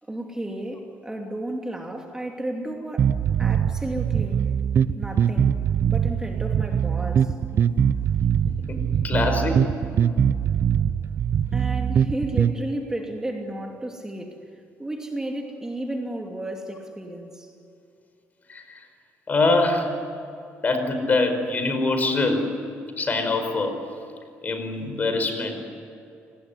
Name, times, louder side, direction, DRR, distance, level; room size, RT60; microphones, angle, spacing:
voice 1, 0.0-4.4 5.0-7.4 11.5-17.5, right 1 dB, 10° right, 2 dB, 2.8 m, -33 dB
sound 1, 3.0-12.5, right 8 dB, 50° right, 0.8 m, -22 dB
voice 2, 8.7-9.6 18.5-18.8 19.3-19.9 20.6-22.5 23.0-23.8 24.4-25.5, left 3 dB, 35° left, 7 dB, 5.2 m, -24 dB
28.5 x 19.5 x 9.9 m, 2.7 s
cardioid pair, 105°, 5 cm